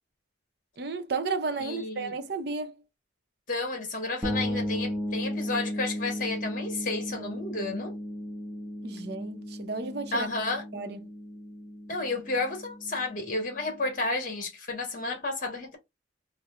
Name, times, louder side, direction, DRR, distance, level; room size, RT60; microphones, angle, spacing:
voice 1, 0.8-2.8 8.8-10.3 10.7-11.0, right 4 dB, 55° right, 0.6 m, -33 dB
voice 2, 1.6-2.1 3.5-8.0 10.1-10.6 11.9-15.8, left 3 dB, 45° left, 1.2 m, -32 dB
sound 1, 4.2-13.8, equal, 10° right, 0.7 m, -35 dB
4.1 x 2.0 x 2.4 m
head